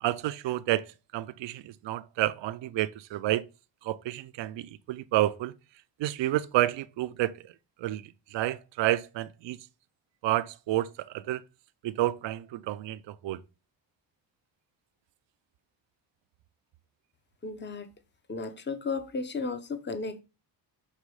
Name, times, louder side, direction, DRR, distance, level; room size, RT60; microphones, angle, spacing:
voice 1, 0.0-3.5 3.8-5.5 6.0-7.5 7.8-9.6 10.2-11.4 11.8-13.4, right 15 dB, 70° right, 0.6 m, -30 dB
voice 2, 17.4-17.9 18.3-20.2, left 4 dB, 25° left, 0.9 m, -34 dB
6.5 x 3.0 x 4.7 m
cardioid pair, 75°, 45 cm